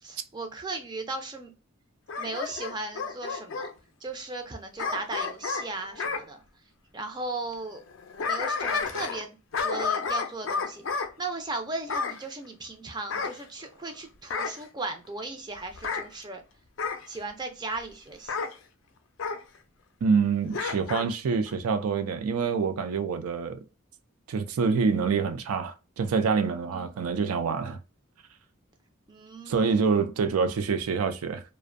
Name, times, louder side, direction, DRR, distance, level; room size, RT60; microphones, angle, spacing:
voice 1, 0.0-1.5 2.2-3.7 4.0-6.4 6.9-7.8 8.3-9.4 9.6-16.4 17.1-18.4 26.7-26.9 29.1-29.8, right 2 dB, 20° right, 0.4 m, -36 dB
Bark / Growling, 2.1-3.7 4.8-6.2 7.9-9.3 9.5-11.1 11.9-12.2 13.1-13.9 14.3-14.6 15.7-16.1 16.8-17.1 18.3-18.5 19.2-19.4 20.5-21.1 21.5-21.6, left 5 dB, 60° left, 0.4 m, -31 dB
voice 2, 20.0-23.6 24.3-27.8 29.5-31.4, right 5 dB, 90° right, 0.4 m, -26 dB
2.5 x 2.1 x 2.4 m
head